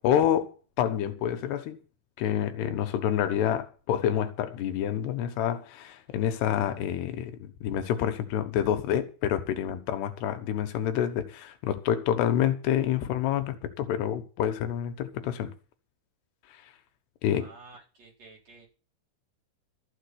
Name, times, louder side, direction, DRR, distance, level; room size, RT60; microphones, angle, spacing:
voice 1, 0.0-0.5 0.8-1.8 2.2-15.5 16.5-16.6 17.2-17.5, left 10 dB, 80° left, 3.3 m, -28 dB
voice 2, 17.4-18.7, right 3 dB, 40° right, 5.3 m, -51 dB
13.5 x 7.4 x 8.5 m
omnidirectional pair, 4.8 m